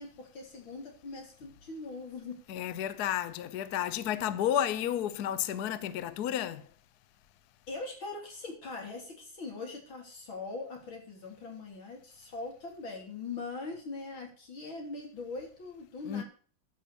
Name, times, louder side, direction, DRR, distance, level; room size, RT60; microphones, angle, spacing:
voice 1, 0.0-2.4 7.7-16.2, left 3 dB, 90° left, 4.0 m, -41 dB
voice 2, 2.5-6.7 16.1-16.2, left 10 dB, 65° left, 1.1 m, -32 dB
13.0 x 5.7 x 6.8 m
omnidirectional pair, 2.1 m